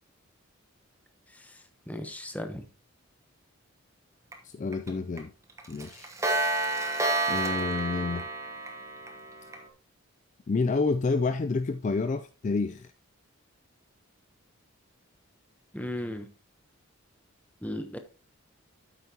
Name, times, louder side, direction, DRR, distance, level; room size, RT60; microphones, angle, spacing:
voice 1, 1.3-2.6 15.7-16.3 17.6-18.0, left 1 dB, 5° left, 0.9 m, -37 dB
Clock, 4.3-4.4 4.7-4.9 5.2-5.3 5.6-9.6, right 2 dB, 15° right, 1.0 m, -30 dB
voice 2, 4.4-5.3 5.7-6.1 7.3-8.3 10.5-12.9, left 4 dB, 35° left, 0.3 m, -29 dB
8.8 x 8.1 x 2.9 m
head